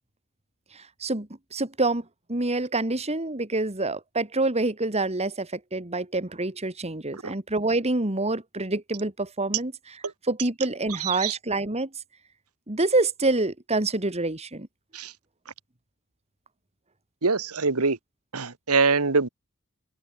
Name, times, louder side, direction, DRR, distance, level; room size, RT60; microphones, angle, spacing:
voice 1, 0.7-11.9 12.7-14.7, right 2 dB, 30° right, 2.4 m, -27 dB
voice 2, 11.0-11.4 14.9-15.1 17.2-18.0 18.3-19.3, right 4 dB, 90° right, 1.7 m, -24 dB
head